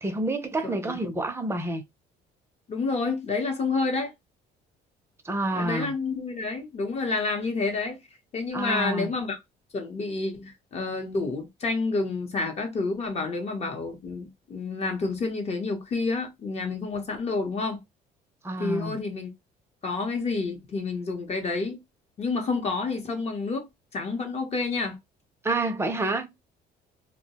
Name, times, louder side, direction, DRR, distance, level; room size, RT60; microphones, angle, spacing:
voice 1, 0.0-1.8 5.2-5.9 8.5-9.1 18.4-19.0 25.4-26.3, right 2 dB, 15° right, 0.5 m, -28 dB
voice 2, 0.6-1.0 2.7-4.1 5.5-8.0 8.3-9.4 9.7-17.8 18.6-19.3 19.8-21.8 22.2-25.0, left 3 dB, 40° left, 0.8 m, -29 dB
2.2 x 2.1 x 2.8 m
cardioid pair, 110°, 17 cm